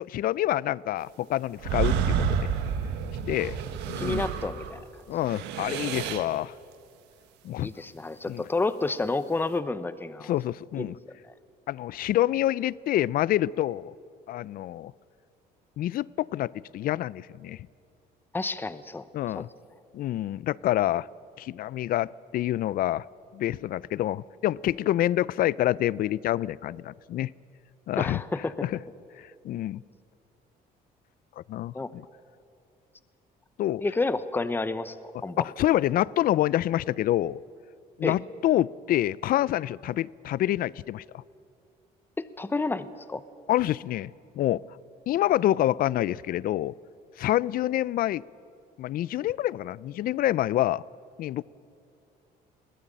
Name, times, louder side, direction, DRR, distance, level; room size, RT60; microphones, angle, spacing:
voice 1, 0.0-2.5 3.3-3.6 3.9-4.2 5.1-6.5 7.4-7.7 8.3-8.4 10.2-10.9 11.7-13.9 14.3-14.9 15.8-17.6 19.1-19.5 19.9-21.1 21.4-23.1 23.3-27.3 27.9-28.2 28.6-28.8 29.2-29.8 31.4-32.1 33.6-33.8 35.4-37.4 38.0-41.0 43.5-44.6 45.1-46.7 47.2-48.2 48.8-50.8 51.2-51.4, left 13 dB, 60° left, 22 dB, 0.5 m, -27 dB
sound 1, 1.6-4.8 5.1-6.4, right 7 dB, 90° right, 1.5 m, -29 dB
voice 2, 4.0-4.8 7.6-10.3 10.8-10.9 11.3-11.4 18.3-19.1 19.3-19.5 28.0-28.5 31.7-31.9 33.8-35.5 38.0-38.2 42.2-43.2, left 3 dB, 10° left, 13 dB, 0.8 m, -30 dB
22.0 x 17.0 x 8.7 m, 2.5 s
cardioid pair, 110°, 17 cm